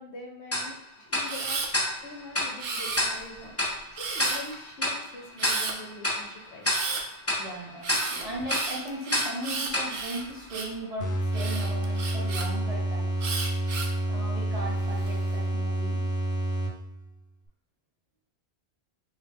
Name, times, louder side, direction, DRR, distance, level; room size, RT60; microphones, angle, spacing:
voice 1, 0.0-1.7 2.0-6.7 7.1-8.3, left 2 dB, 85° left, 1 dB, 1.0 m, -44 dB
Tick-tock, 0.5-11.0, left 1 dB, 15° left, 0.7 m, -32 dB
Camera, 1.2-1.7 2.6-3.3 4.0-4.5 5.4-5.7 6.6-7.0 7.8-10.8 11.3-12.5 13.2-14.0 14.6-15.1, right 4 dB, 65° right, 0.7 m, -33 dB
voice 2, 7.4-13.1 14.1-16.0, right 1 dB, 40° right, -4 dB, 0.9 m, -37 dB
sound 1, 11.0-17.1, right 1 dB, 70° left, 0.8 m, -29 dB
4.0 x 2.2 x 3.4 m, 0.69 s
omnidirectional pair, 1.1 m